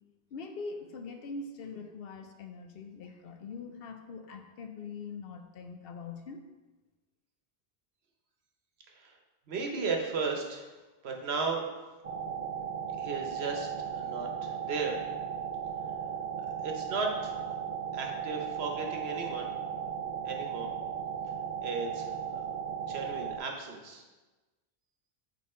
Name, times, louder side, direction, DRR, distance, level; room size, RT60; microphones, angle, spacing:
voice 1, 0.3-6.4, left 4 dB, 65° left, 6 dB, 0.7 m, -42 dB
voice 2, 9.5-10.7 11.0-11.6 13.0-15.0 16.6-17.6 17.9-19.5 20.2-20.7 21.6-22.4 22.8-24.0, right 4 dB, 70° right, 2 dB, 1.1 m, -35 dB
sound 1, 12.0-23.4, right 7 dB, 50° right, 0.5 m, -36 dB
5.4 x 4.2 x 4.2 m, 1.2 s
omnidirectional pair, 1.1 m